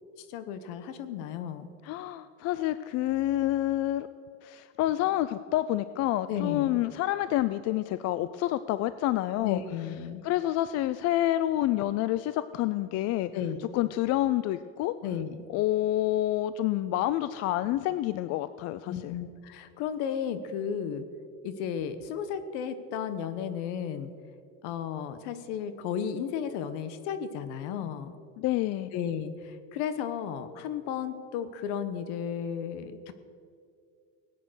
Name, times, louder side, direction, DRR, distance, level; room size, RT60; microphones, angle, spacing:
voice 1, 0.2-1.7 6.3-6.7 9.4-10.2 13.3-13.6 15.0-15.4 18.9-21.1 21.4-24.1 24.6-28.1 28.9-33.1, left 8 dB, 80° left, 12 dB, 1.2 m, -34 dB
voice 2, 1.8-4.1 4.4-9.6 10.2-13.3 13.7-14.9 15.5-19.1 28.4-28.9, left 14 dB, 50° left, 14 dB, 0.4 m, -28 dB
18.0 x 9.2 x 6.3 m, 2.4 s
cardioid pair, 140°, 34 cm